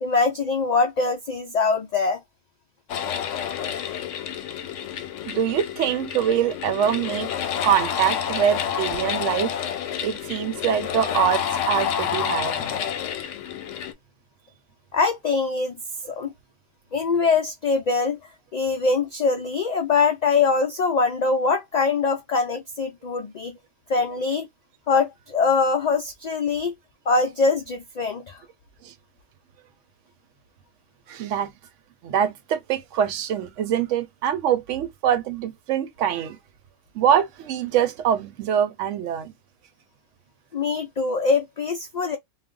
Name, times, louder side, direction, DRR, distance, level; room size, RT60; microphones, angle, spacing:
voice 1, 0.0-2.2 14.9-15.8 16.1-16.3 16.9-18.2 18.5-23.5 23.9-24.5 24.9-26.7 27.1-28.4 40.5-42.2, left 4 dB, 75° left, 0.4 m, -23 dB
sound 1, 2.9-13.9, left 8 dB, 90° left, 0.9 m, -29 dB
voice 2, 5.3-7.3 7.6-9.6 10.0-12.6 28.8-28.9 31.1-31.5 32.0-36.4 36.9-39.3, right 9 dB, 85° right, 0.9 m, -24 dB
2.2 x 2.1 x 3.7 m
omnidirectional pair, 1.2 m